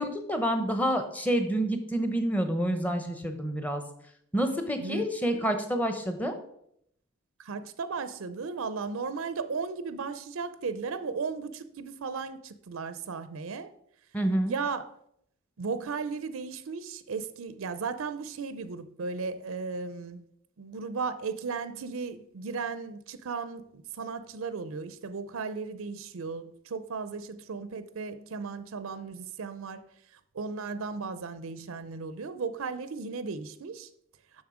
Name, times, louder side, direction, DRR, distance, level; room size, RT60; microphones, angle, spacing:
voice 1, 0.0-3.8 4.3-6.3 14.1-14.5, equal, 5° left, 0.8 m, -28 dB
voice 2, 4.8-5.5 7.4-13.7 14.5-14.9 15.6-20.3 20.6-33.9, right 4 dB, 70° right, 0.5 m, -36 dB
7.2 x 6.4 x 4.9 m
head